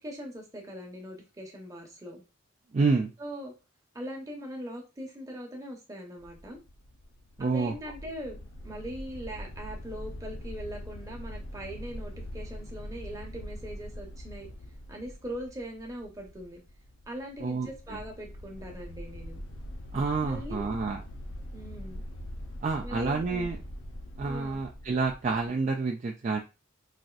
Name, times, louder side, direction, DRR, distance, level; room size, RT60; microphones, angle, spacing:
voice 1, 0.0-2.2 3.2-3.5 3.9-6.6 7.4-8.4 8.6-14.5 14.9-16.6 17.1-19.4 20.2-20.9 21.5-22.0 22.8-23.5 24.3-24.6, equal, 15° right, 0 dB, 0.8 m, -41 dB
voice 2, 2.7-3.1 7.4-7.7 17.4-18.0 19.9-21.0 22.6-23.6 24.2-26.4, right 4 dB, 35° right, 1 dB, 0.3 m, -28 dB
sound 1, 6.2-25.5, equal, 75° left, 0.7 m, -43 dB
4.1 x 2.5 x 2.3 m, 0.29 s
head